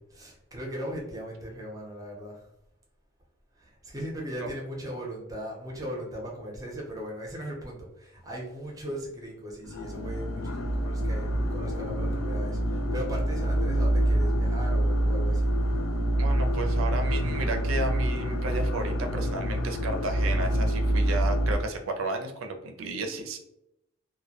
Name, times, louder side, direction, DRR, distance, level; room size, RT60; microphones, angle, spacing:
voice 1, 0.0-2.5 3.5-15.6, equal, 15° right, -2 dB, 0.6 m, -38 dB
sound 1, 9.6-21.6, right 1 dB, 75° left, 0.4 m, -26 dB
voice 2, 16.2-23.4, right 2 dB, 70° right, 5 dB, 0.4 m, -33 dB
2.1 x 2.1 x 2.8 m, 0.83 s
head